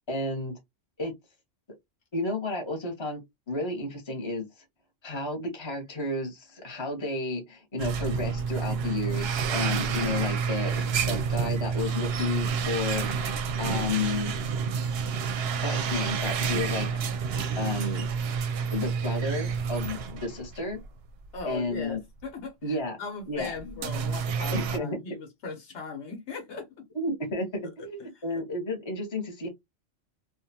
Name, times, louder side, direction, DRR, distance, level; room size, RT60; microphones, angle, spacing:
voice 1, 0.1-0.6 1.0-1.1 2.1-3.2 3.5-4.5 5.0-13.3 13.6-14.3 15.6-16.9 17.6-18.1 18.7-20.8 21.5-22.0 22.6-23.0 23.3-23.7 24.5-25.0 26.9-29.5, left 2 dB, 25° left, 0.9 m, -32 dB
sound 1, 7.8-20.9 21.2-21.4 22.2-22.3 23.4-24.8, right 6 dB, 65° right, 0.7 m, -29 dB
voice 2, 21.3-22.5 23.0-26.7 28.0-28.1 28.3-28.4, left 4 dB, 70° left, 1.1 m, -38 dB
2.6 x 2.4 x 2.6 m
omnidirectional pair, 1.2 m